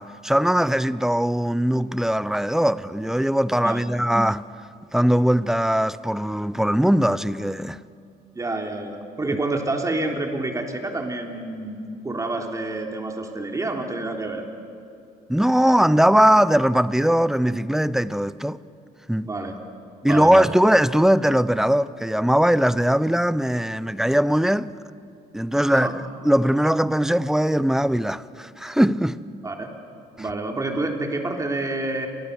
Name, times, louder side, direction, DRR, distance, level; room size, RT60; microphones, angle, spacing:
voice 1, 0.0-4.5 4.9-7.8 15.3-18.6 19.1-19.3 20.0-24.7 25.3-29.2, equal, 5° right, 0.6 m, -20 dB
voice 2, 8.3-11.8 12.0-14.4 19.2-19.6 20.0-20.5 25.7-25.9 29.4-29.7 30.2-32.1, right 2 dB, 20° right, 3.5 m, -28 dB
30.0 x 25.0 x 6.9 m
cardioid pair, 110°, 17 cm